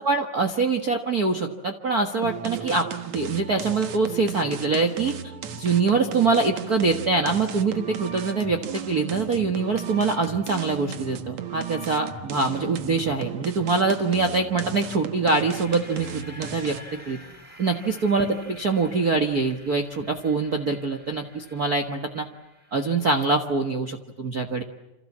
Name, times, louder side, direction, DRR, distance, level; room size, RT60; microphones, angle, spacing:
voice 1, 0.0-5.1 5.5-16.8 17.1-17.2 17.6-22.3 22.7-24.6, right 4 dB, 40° right, 5 dB, 1.5 m, -24 dB
sound 1, 2.2-17.0, right 8 dB, 65° right, 2.7 m, -36 dB
sound 2, 15.4-23.0, equal, 5° left, 5.7 m, -48 dB
28.5 x 27.5 x 7.4 m, 0.99 s
omnidirectional pair, 3.6 m